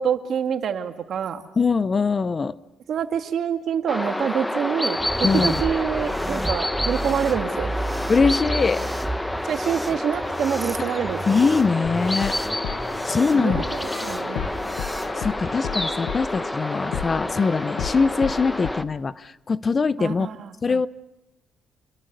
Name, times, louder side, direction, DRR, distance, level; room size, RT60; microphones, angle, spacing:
voice 1, 0.0-1.4 2.9-7.7 9.5-11.2 13.3-14.4 20.0-20.5, right 8 dB, 65° right, 7 dB, 2.0 m, -26 dB
voice 2, 1.6-2.6 5.2-5.6 8.1-8.8 10.9-11.0 11.3-12.4 13.0-13.6 15.2-20.3 20.6-20.9, left 4 dB, 35° left, 17 dB, 0.8 m, -22 dB
sound 1, 3.9-18.8, left 1 dB, 10° left, 1.0 m, -29 dB
sound 2, 5.0-15.1, right 1 dB, 5° right, 1.4 m, -33 dB
sound 3, 11.8-18.7, left 8 dB, 90° left, 1.4 m, -34 dB
28.5 x 23.5 x 6.7 m, 0.95 s
cardioid pair, 90°, 0 cm